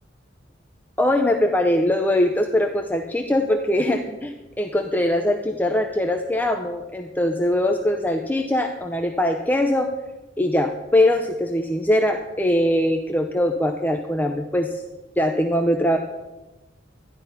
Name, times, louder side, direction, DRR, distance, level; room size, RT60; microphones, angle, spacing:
voice 1, 1.0-9.9 10.4-14.8 15.2-16.0, left 1 dB, 10° left, 4 dB, 0.7 m, -22 dB
13.5 x 10.5 x 5.6 m, 1.1 s
head